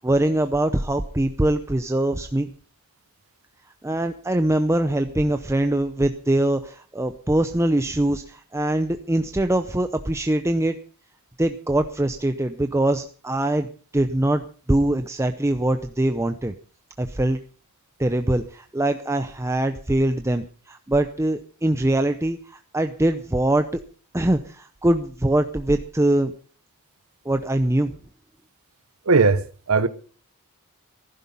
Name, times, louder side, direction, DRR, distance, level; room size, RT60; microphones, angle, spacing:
voice 1, 0.0-2.5 3.8-10.8 11.4-13.7 13.9-16.5 17.0-17.4 18.0-23.8 24.1-26.3 27.2-28.0, right 1 dB, 10° right, 0.6 m, -23 dB
voice 2, 29.1-29.9, right 4 dB, 65° right, 0.9 m, -18 dB
15.0 x 12.5 x 5.5 m
head